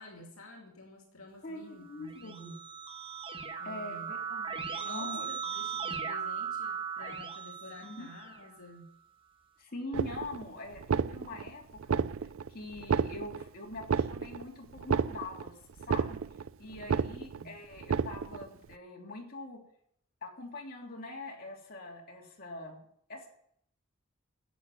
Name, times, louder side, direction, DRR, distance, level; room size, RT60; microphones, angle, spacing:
voice 1, 0.0-2.6 3.6-4.1 4.7-9.0 16.6-17.6, left 2 dB, 70° left, 1 dB, 2.5 m, -50 dB
voice 2, 1.4-2.5 3.6-4.6 4.8-5.3 7.8-8.1 9.6-12.0 12.5-15.6 15.8-16.2 16.6-19.6 20.2-22.8 23.1-23.3, left 2 dB, 45° left, -1 dB, 3.0 m, -43 dB
Keyboard (musical), 1.9-8.6, right 6 dB, 25° right, 1.5 m, -38 dB
sound 1, 9.9-10.5 10.8-11.5 11.8-12.5 12.8-13.5 13.8-14.5 14.8-15.5 15.8-16.5 16.8-17.5 17.8-18.5, right 6 dB, 60° right, 0.4 m, -31 dB
10.5 x 8.0 x 9.3 m, 0.69 s
head